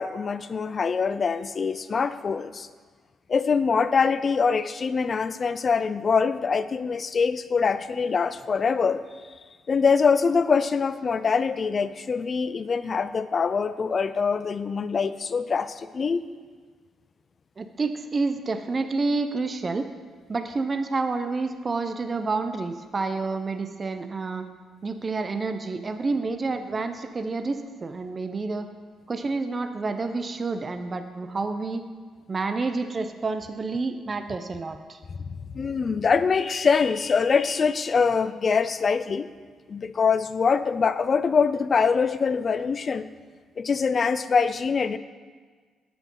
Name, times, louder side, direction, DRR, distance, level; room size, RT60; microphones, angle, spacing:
voice 1, 0.0-2.7 3.3-9.0 9.7-16.2 35.2-39.3 39.7-43.1 43.6-45.0, left 5 dB, 40° left, 13 dB, 0.4 m, -24 dB
voice 2, 17.6-19.8 20.3-24.5 24.8-28.7 29.1-31.9 32.3-35.0, right 3 dB, 35° right, 8 dB, 0.6 m, -29 dB
8.2 x 6.1 x 5.4 m, 1.5 s
cardioid pair, 90°, 0 cm